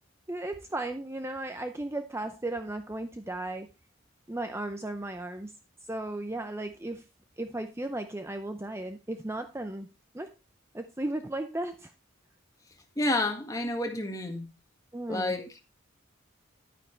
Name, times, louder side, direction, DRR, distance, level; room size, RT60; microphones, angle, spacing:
voice 1, 0.3-3.7 4.3-5.5 5.9-7.0 7.4-9.9 10.1-10.3 10.7-11.9 14.9-15.3, right 1 dB, 10° right, 0.5 m, -35 dB
voice 2, 13.0-14.5 15.1-15.6, left 1 dB, 15° left, 1.7 m, -30 dB
11.0 x 9.6 x 3.3 m
head